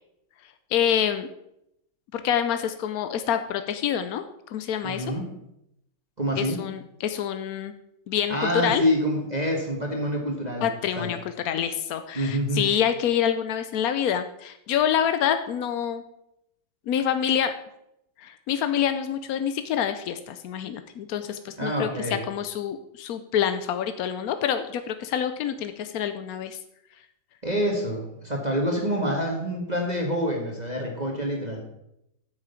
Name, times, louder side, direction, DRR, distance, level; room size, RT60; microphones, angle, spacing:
voice 1, 0.7-1.3 2.1-4.2 4.5-5.1 6.3-7.7 8.1-8.8 10.6-16.0 16.9-17.5 18.2-26.6, left 9 dB, 75° left, 9 dB, 0.8 m, -27 dB
voice 2, 4.8-5.2 6.2-6.6 8.3-10.7 10.9-11.1 12.1-12.7 21.6-22.2 27.4-31.6, equal, 20° right, 0 dB, 1.7 m, -26 dB
8.6 x 6.5 x 8.2 m, 0.81 s
omnidirectional pair, 2.3 m